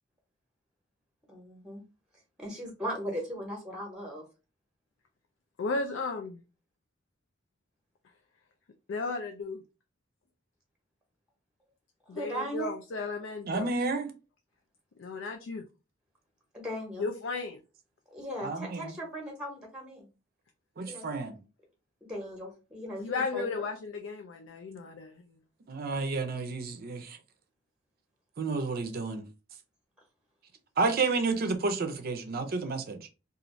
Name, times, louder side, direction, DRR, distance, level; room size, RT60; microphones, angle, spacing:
voice 1, 1.3-1.8 2.4-4.2 12.1-12.7 16.5-17.1 18.1-20.1 20.8-21.2 22.0-23.5, equal, 5° right, 0.8 m, -38 dB
voice 2, 5.6-6.4 8.9-9.6 12.1-13.7 15.0-15.7 17.0-17.6 23.0-25.3, left 3 dB, 75° left, 0.4 m, -34 dB
voice 3, 13.5-14.1 18.4-19.0 20.8-21.4 25.7-27.2 28.4-29.2 30.8-33.1, right 3 dB, 50° right, 0.5 m, -31 dB
2.5 x 2.4 x 3.0 m
head